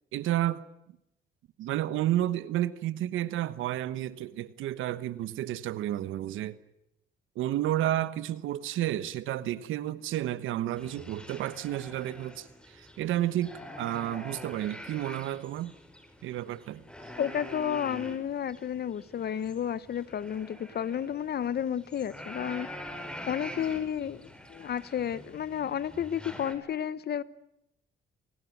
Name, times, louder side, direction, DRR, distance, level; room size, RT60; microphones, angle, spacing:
voice 1, 0.1-0.6 1.6-6.6 7.3-15.7 16.2-16.8, right 13 dB, 85° right, 1.2 m, -31 dB
sound 1, 10.8-26.5, left 1 dB, 5° left, 4.6 m, -45 dB
voice 2, 17.2-22.7 23.3-27.2, left 9 dB, 55° left, 1.0 m, -32 dB
26.0 x 18.5 x 9.4 m
cardioid pair, 90°, 20 cm